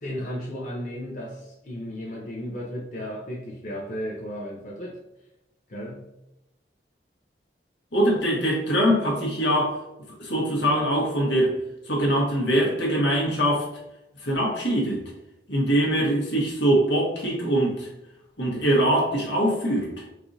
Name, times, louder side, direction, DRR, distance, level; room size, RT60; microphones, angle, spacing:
voice 1, 0.0-5.0 5.7-6.1, equal, 45° left, 0.6 m, -34 dB
voice 2, 7.9-9.8 10.2-11.6 11.9-13.6 14.2-15.0 15.5-17.9 18.4-19.9, right 1 dB, 85° left, 1.3 m, -23 dB
4.6 x 2.6 x 2.7 m
head